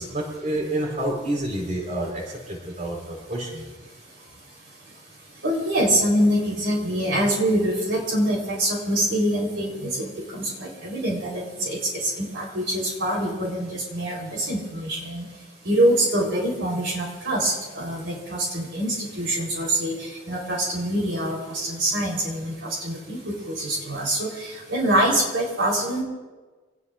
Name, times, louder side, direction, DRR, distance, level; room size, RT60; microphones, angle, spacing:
voice 1, 0.0-3.6, right 1 dB, 40° right, 0 dB, 4.5 m, -29 dB
voice 2, 5.4-15.2 15.6-19.9 20.3-26.0, right 1 dB, 65° right, -2 dB, 4.0 m, -25 dB
25.5 x 19.5 x 2.6 m, 1.3 s
head